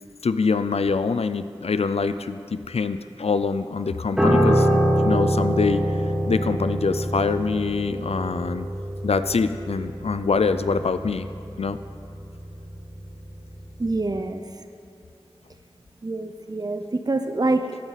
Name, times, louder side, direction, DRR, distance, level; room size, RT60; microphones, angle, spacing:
voice 1, 0.2-6.0 6.3-8.7 9.0-11.3 11.6-11.8, left 4 dB, 85° left, 11 dB, 0.4 m, -24 dB
Piano, 4.2-13.5 13.8-14.1, equal, 5° right, 2.9 m, -24 dB
voice 2, 13.8-14.4 16.0-17.8, right 2 dB, 40° right, 8 dB, 0.6 m, -25 dB
15.0 x 9.2 x 4.1 m, 2.5 s
wide cardioid pair, 50°, 10 cm